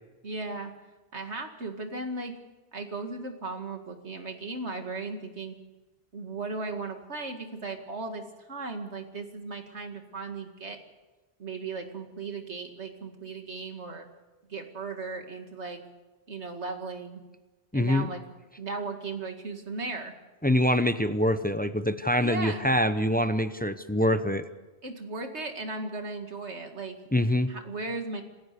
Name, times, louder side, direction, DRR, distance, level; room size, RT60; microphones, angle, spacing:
voice 1, 0.2-0.7 1.1-2.4 2.7-5.6 6.1-10.8 11.4-14.1 14.5-15.8 16.3-17.2 17.7-18.2 18.6-20.1 22.2-22.7 24.8-27.0 27.5-28.2, right 3 dB, 80° right, 5 dB, 2.4 m, -36 dB
voice 2, 17.7-18.1 20.4-24.5 27.1-27.5, left 1 dB, 10° left, 10 dB, 0.8 m, -25 dB
27.5 x 15.0 x 6.9 m, 1.2 s
omnidirectional pair, 1.1 m